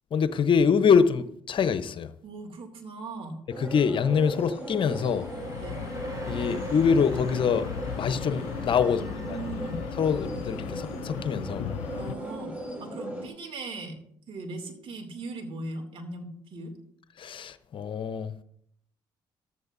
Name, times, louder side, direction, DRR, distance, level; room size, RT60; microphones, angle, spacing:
voice 1, 0.1-2.1 3.6-5.3 6.2-7.7 8.0-9.1 10.0-11.6 17.2-18.3, left 6 dB, 50° left, 0.9 m, -24 dB
voice 2, 2.2-3.4 4.3-4.4 5.6-5.8 8.9-9.8 11.9-12.5 12.8-14.0 14.3-16.7, right 2 dB, 60° right, 2.7 m, -39 dB
sound 1, 3.5-13.3, right 1 dB, 15° right, 5.4 m, -38 dB
sound 2, 4.2-12.9, right 1 dB, 35° right, 3.1 m, -46 dB
sound 3, 5.0-12.1, left 11 dB, 75° left, 0.4 m, -37 dB
14.5 x 12.5 x 2.7 m
hypercardioid pair, 50°, 11 cm